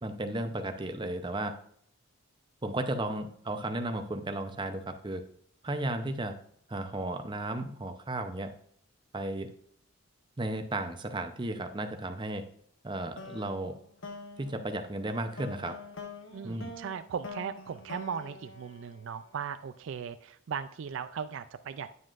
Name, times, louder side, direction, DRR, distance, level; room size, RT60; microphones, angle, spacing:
voice 1, 0.0-1.5 2.6-5.2 5.6-6.4 6.7-8.5 9.1-9.5 10.4-12.4 12.8-13.8 14.4-15.7 16.4-16.8, right 1 dB, 20° right, 7 dB, 0.6 m, -34 dB
sound 1, 13.2-19.6, left 3 dB, 60° left, 1.0 m, -46 dB
voice 2, 16.3-21.9, right 7 dB, 60° right, 11 dB, 0.3 m, -38 dB
9.5 x 7.4 x 2.5 m, 0.65 s
head